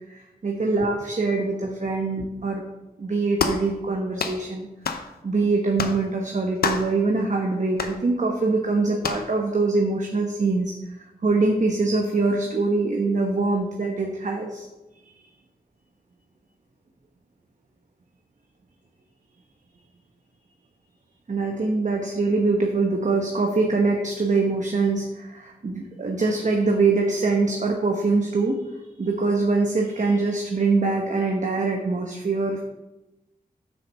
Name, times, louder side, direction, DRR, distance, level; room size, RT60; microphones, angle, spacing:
voice 1, 0.1-2.6 3.0-4.7 4.9-10.7 11.2-14.7 21.3-28.6 29.0-32.6, right 3 dB, 50° right, 2 dB, 1.0 m, -23 dB
sound 1, 3.4-3.7 4.2-4.4 4.8-5.1 5.8-6.0 6.6-6.9 7.8-8.0 9.0-9.3, left 5 dB, 80° left, 0.7 m, -26 dB
6.4 x 5.0 x 6.4 m, 1.0 s
cardioid pair, 45°, 16 cm